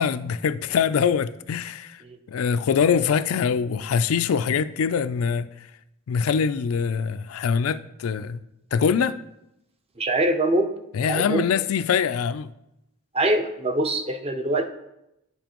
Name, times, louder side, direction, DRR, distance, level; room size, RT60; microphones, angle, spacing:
voice 1, 0.0-2.0 2.3-5.5 6.1-8.4 8.7-9.2 10.9-12.5, left 6 dB, 90° left, 0.4 m, -23 dB
voice 2, 10.0-10.8 11.0-11.4 13.1-14.7, right 1 dB, 30° right, 0.6 m, -23 dB
9.8 x 7.1 x 3.0 m
head